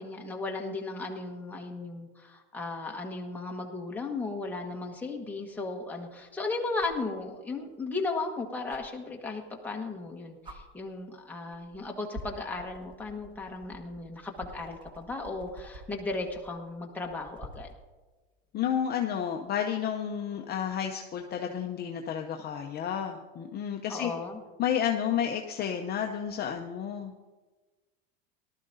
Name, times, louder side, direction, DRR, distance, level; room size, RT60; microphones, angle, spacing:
voice 1, 0.0-17.7 23.9-24.4, left 3 dB, 5° left, 0 dB, 1.3 m, -36 dB
sound 1, 4.5-4.6 6.8-7.1 8.7-8.8 10.0-10.1 10.4-10.6 11.5-11.8 12.1-17.8 19.5-19.6, equal, 15° right, 1.2 m, -47 dB
voice 2, 18.5-24.1 24.6-27.1, left 9 dB, 30° left, 2 dB, 0.7 m, -31 dB
18.0 x 12.5 x 2.7 m, 1.3 s
supercardioid pair, 130°, 32 cm